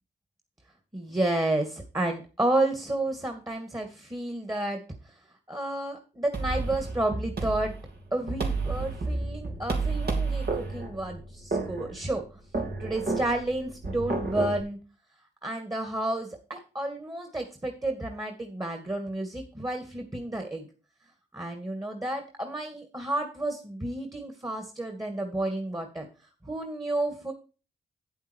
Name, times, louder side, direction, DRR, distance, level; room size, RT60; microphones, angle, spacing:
voice 1, 0.9-5.1 5.5-7.7 8.1-12.2 12.8-14.8 15.4-20.7 21.3-26.1 26.4-27.3, right 1 dB, 20° right, 5 dB, 2.2 m, -31 dB
sound 1, 6.3-14.6, right 3 dB, 65° right, 3.3 m, -31 dB
8.9 x 8.1 x 4.7 m, 0.34 s
cardioid pair, 60°, 18 cm